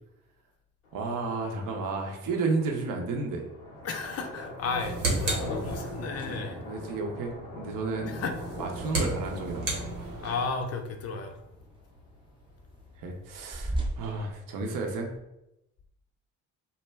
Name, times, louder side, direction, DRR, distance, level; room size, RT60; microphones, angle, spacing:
sound 1, 0.8-14.7, left 1 dB, 90° left, 0.6 m, -44 dB
voice 1, 0.9-3.5 6.6-8.1 8.6-9.8 13.0-15.1, right 3 dB, 55° right, 2 dB, 0.6 m, -32 dB
voice 2, 3.8-6.6 8.0-8.3 10.2-11.4, left 4 dB, 40° left, 4 dB, 0.5 m, -33 dB
sound 2, 4.6-6.2 8.2-10.5, right 2 dB, 80° right, 0.9 m, -32 dB
sound 3, 6.1-15.2, right 1 dB, 15° right, 0.6 m, -42 dB
2.2 x 2.1 x 3.3 m, 0.87 s
hypercardioid pair, 45°, 39 cm